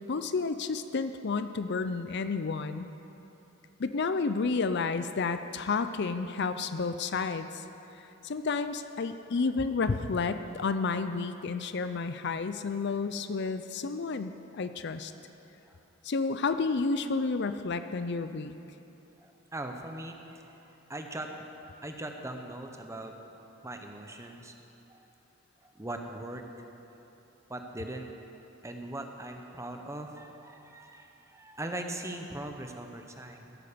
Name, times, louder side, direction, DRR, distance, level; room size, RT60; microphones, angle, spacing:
voice 1, 0.1-2.9 3.8-7.6 8.2-15.1 16.0-18.5, left 4 dB, 55° left, 10 dB, 0.5 m, -31 dB
voice 2, 19.2-20.6 20.9-23.2 23.6-24.5 24.9-25.0 25.6-26.4 27.5-28.1 28.6-33.6, right 1 dB, 15° right, 4 dB, 1.0 m, -40 dB
16.0 x 9.2 x 6.8 m, 3.0 s
head